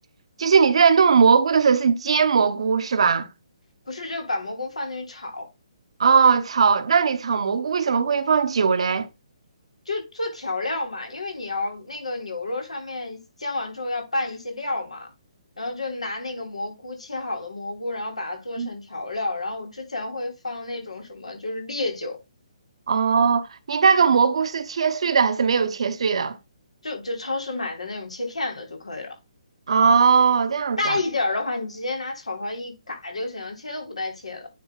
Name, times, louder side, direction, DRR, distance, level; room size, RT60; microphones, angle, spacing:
voice 1, 0.4-3.3 6.0-9.1 18.6-18.7 22.9-26.4 29.7-31.0, right 6 dB, 60° right, 1.0 m, -19 dB
voice 2, 3.9-5.5 9.8-15.1 15.6-22.2 26.8-29.1 30.8-34.5, left 2 dB, 85° left, 3.4 m, -30 dB
9.4 x 3.3 x 4.8 m
figure-of-eight pair, 140°, 3 cm